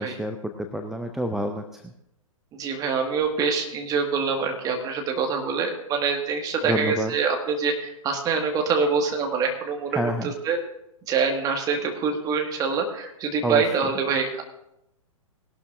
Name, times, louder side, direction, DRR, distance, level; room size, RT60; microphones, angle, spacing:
voice 1, 0.0-1.9 6.6-7.1 9.9-10.3 13.4-13.9, right 1 dB, ahead, 5 dB, 0.4 m, -29 dB
voice 2, 2.5-10.6 11.1-14.4, right 5 dB, 20° right, 3 dB, 1.8 m, -25 dB
19.5 x 12.0 x 2.6 m, 0.83 s
figure-of-eight pair, 115°, 18 cm